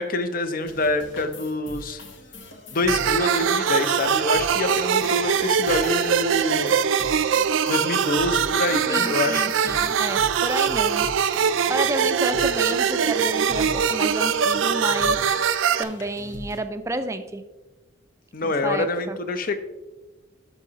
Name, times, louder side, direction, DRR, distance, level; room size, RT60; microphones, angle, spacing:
voice 1, 0.0-2.0 2.7-6.8 7.7-9.4 18.3-19.6, left 2 dB, 45° left, 9 dB, 0.6 m, -26 dB
sound 1, 0.6-16.6, left 1 dB, 70° left, 1.3 m, -41 dB
sound 2, 2.9-15.8, right 7 dB, 75° right, 0.4 m, -22 dB
voice 2, 8.9-11.1 11.7-15.3 15.8-17.4 18.4-19.2, right 2 dB, 15° right, 9 dB, 0.4 m, -30 dB
12.0 x 6.1 x 2.9 m, 1.1 s
head